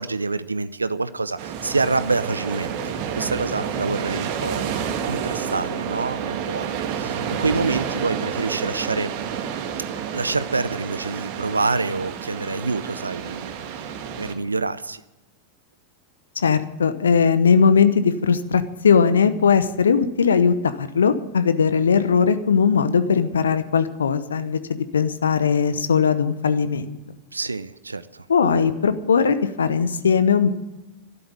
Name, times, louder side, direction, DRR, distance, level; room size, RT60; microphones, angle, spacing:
voice 1, 0.0-4.7 5.0-9.1 10.1-13.5 14.2-15.0 27.3-28.3, right 3 dB, 80° right, 15 dB, 0.6 m, -26 dB
sound 1, 1.4-14.3, right 7 dB, 45° right, 2.1 m, -29 dB
voice 2, 16.4-27.0 28.3-30.5, left 6 dB, 70° left, 12 dB, 0.9 m, -19 dB
12.5 x 11.0 x 9.7 m, 0.99 s
figure-of-eight pair, 90°, 0 cm